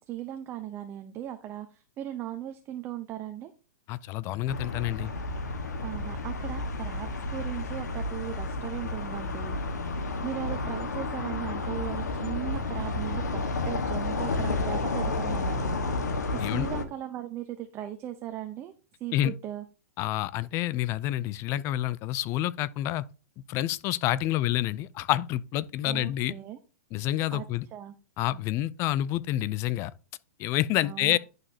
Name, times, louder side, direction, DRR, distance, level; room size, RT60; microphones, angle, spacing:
voice 1, 0.1-3.5 5.8-9.6 10.2-18.7 19.0-19.6 25.8-26.6 27.3-27.4 27.7-27.9 30.8-31.2, right 11 dB, 25° right, 0.8 m, -38 dB
voice 2, 3.9-5.1 16.4-16.7 19.1-19.3 20.0-23.0 23.5-26.3 26.9-27.7 28.2-29.9 30.4-31.2, left 14 dB, 30° left, 0.5 m, -28 dB
sound 1, 4.5-16.8, left 2 dB, 90° left, 1.6 m, -31 dB
11.0 x 6.5 x 2.9 m
hypercardioid pair, 140°, 9 cm